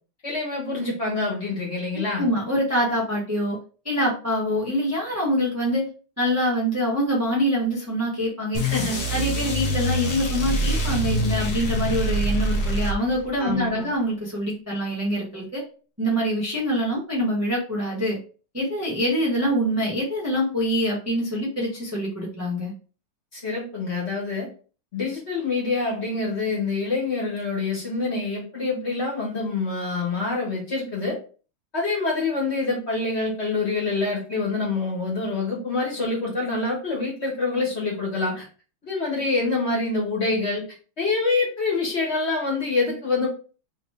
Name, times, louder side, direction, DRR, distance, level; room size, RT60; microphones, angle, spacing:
voice 1, 0.2-2.3 8.6-9.0 13.4-13.9 23.3-24.5 24.9-31.2 31.7-38.5 38.8-40.6 41.0-43.3, left 3 dB, 35° left, -3 dB, 1.4 m, -26 dB
voice 2, 2.2-3.6 3.8-5.9 6.2-8.6 9.1-15.6 16.0-18.2 18.5-22.7, equal, 15° right, -4 dB, 0.6 m, -25 dB
sound 1, 8.5-13.4, equal, 55° left, 1.3 m, -25 dB
3.7 x 3.0 x 3.3 m, 0.37 s
omnidirectional pair, 2.3 m